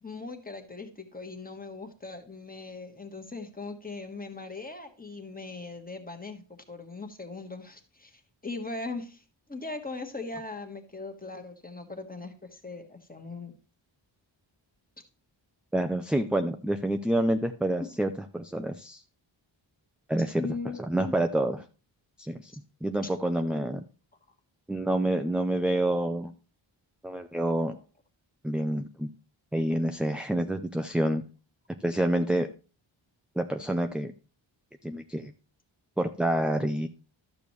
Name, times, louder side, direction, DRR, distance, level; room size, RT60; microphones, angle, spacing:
voice 1, 0.0-9.2 9.5-13.5 20.2-21.1 23.0-23.1, left 3 dB, 20° left, 5 dB, 1.4 m, -39 dB
voice 2, 15.7-19.0 20.1-20.4 20.9-21.6 22.2-22.5 22.8-23.8 24.7-26.3 27.0-27.7 28.4-29.1 29.5-31.2 31.8-32.5 33.4-34.1 34.8-35.3 36.0-36.9, right 1 dB, ahead, 6 dB, 0.4 m, -27 dB
12.5 x 6.8 x 3.1 m, 0.35 s
wide cardioid pair, 95°, 48 cm